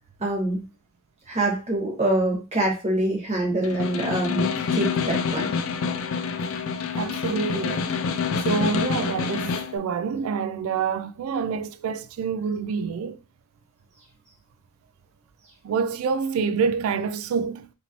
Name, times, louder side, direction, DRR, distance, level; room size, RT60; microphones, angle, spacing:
voice 1, 0.2-0.6 1.3-5.5, right 1 dB, 35° right, 1.2 m, -25 dB
Snare drum, 3.6-9.8, left 5 dB, 70° left, 0.3 m, -27 dB
voice 2, 6.9-7.9 8.4-13.2 15.6-17.7, right 6 dB, 80° right, 0.3 m, -27 dB
2.9 x 2.6 x 2.9 m
head